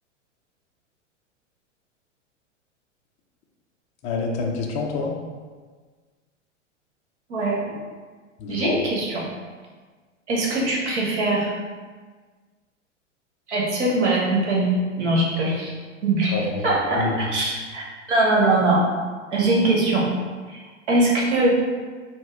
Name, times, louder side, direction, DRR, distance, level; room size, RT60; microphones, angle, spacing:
voice 1, 4.0-5.2 8.4-8.7 16.3-17.2, left 4 dB, 20° left, 0 dB, 0.4 m, -27 dB
voice 2, 7.3-7.6 8.5-9.2 10.3-11.5 13.5-15.7 16.0-16.3 16.6-18.8 19.3-20.1 20.5-21.5, right 2 dB, 65° right, -3 dB, 1.2 m, -22 dB
4.0 x 2.1 x 3.7 m, 1.5 s
figure-of-eight pair, 95°, 37 cm